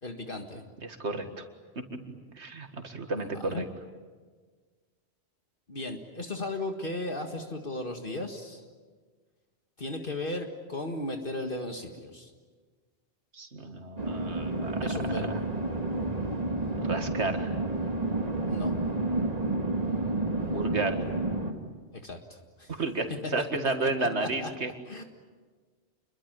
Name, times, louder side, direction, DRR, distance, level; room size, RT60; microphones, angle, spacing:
voice 1, 0.0-0.6 3.2-3.7 5.7-8.6 9.8-12.3 14.8-15.4 18.5-18.7 21.9-22.7 23.4-24.5 24.9-25.0, left 2 dB, 55° left, 4 dB, 2.0 m, -36 dB
voice 2, 0.8-1.4 2.4-3.6 13.3-14.8 15.3-15.4 16.8-17.5 20.5-21.0 22.7-24.7, right 3 dB, 80° right, 6 dB, 2.3 m, -32 dB
sound 1, 14.0-21.5, right 2 dB, 35° right, 2.3 m, -30 dB
28.5 x 22.5 x 9.2 m, 1.5 s
omnidirectional pair, 1.1 m